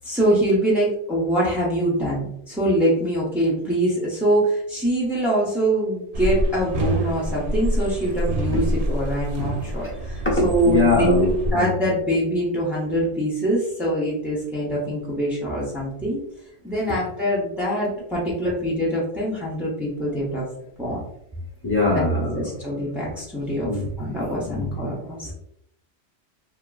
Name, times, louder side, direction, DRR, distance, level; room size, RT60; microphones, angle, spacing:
voice 1, 0.0-16.2 16.6-20.4 20.8-21.0 21.9-22.0 22.4-23.7 24.0-25.3, right 1 dB, ahead, -7 dB, 0.3 m, -24 dB
sound 1, 6.1-11.5, right 1 dB, 70° right, 0.8 m, -26 dB
voice 2, 10.2-11.6 21.6-22.4 23.6-23.9 24.5-24.7, left 3 dB, 15° left, -4 dB, 0.7 m, -22 dB
2.9 x 2.3 x 2.3 m, 0.76 s
omnidirectional pair, 1.1 m